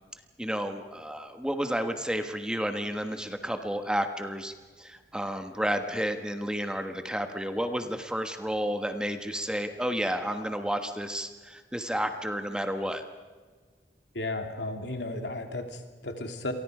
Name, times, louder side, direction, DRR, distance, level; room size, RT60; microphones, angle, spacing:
voice 1, 0.4-13.0, equal, 5° right, 7 dB, 1.3 m, -31 dB
voice 2, 14.1-16.5, left 2 dB, 75° left, 5 dB, 2.9 m, -34 dB
29.5 x 23.5 x 5.0 m, 1.4 s
head